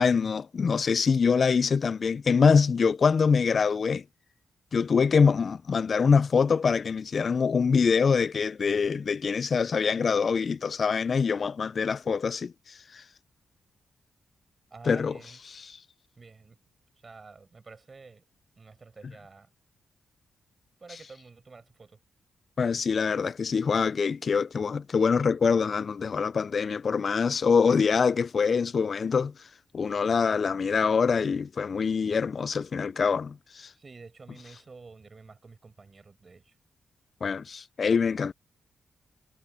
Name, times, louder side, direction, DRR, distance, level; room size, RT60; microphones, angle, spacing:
voice 1, 0.0-4.0 4.7-13.0 14.8-15.2 15.5-15.8 22.6-29.3 29.7-33.7 37.2-38.3, left 5 dB, 55° left, 0.4 m, -24 dB
voice 2, 14.7-15.4 16.2-16.6 17.0-18.2 18.6-19.5 20.8-22.0 33.7-36.5, right 4 dB, 45° right, 5.2 m, -49 dB
supercardioid pair, 45°, 0 cm